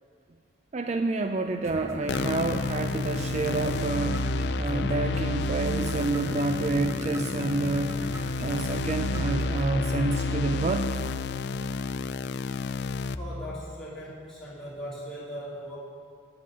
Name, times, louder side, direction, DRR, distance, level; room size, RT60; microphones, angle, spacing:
voice 1, 0.7-4.2 4.6-7.9 8.4-11.0, right 3 dB, 35° right, 5 dB, 0.3 m, -28 dB
sound 1, 1.6-9.6, right 1 dB, 15° right, 0.9 m, -41 dB
sound 2, 2.1-13.1, left 3 dB, 60° left, 0.3 m, -30 dB
voice 2, 13.2-15.8, equal, 5° left, -9 dB, 2.7 m, -39 dB
7.9 x 7.5 x 8.4 m, 2.3 s
head